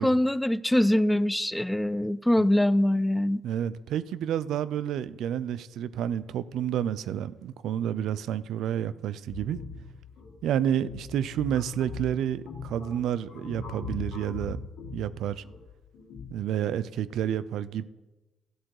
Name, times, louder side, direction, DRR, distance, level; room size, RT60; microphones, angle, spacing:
voice 1, 0.0-3.4, left 1 dB, 5° left, 0.3 m, -23 dB
voice 2, 3.4-9.6 10.4-14.6 14.9-15.4 16.3-17.8, right 10 dB, 80° right, 0.4 m, -30 dB
sound 1, 9.3-16.3, left 4 dB, 80° left, 1.7 m, -41 dB
13.5 x 7.6 x 4.8 m
cardioid pair, 90°, 0 cm